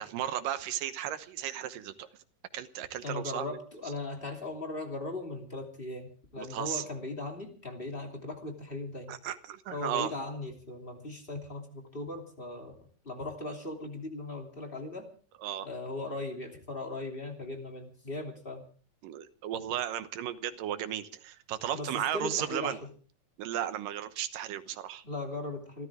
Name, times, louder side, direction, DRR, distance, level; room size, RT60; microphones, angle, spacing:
voice 1, 0.0-2.1 2.5-3.6 6.4-6.8 9.1-10.1 15.4-15.7 19.0-22.8 23.4-25.0, right 11 dB, 75° right, 11 dB, 2.7 m, -35 dB
voice 2, 3.0-9.2 9.7-12.7 13.0-15.1 15.6-18.6 21.7-22.8 25.0-25.9, left 2 dB, 15° left, 2 dB, 2.7 m, -38 dB
28.0 x 13.5 x 3.6 m, 0.41 s
omnidirectional pair, 3.9 m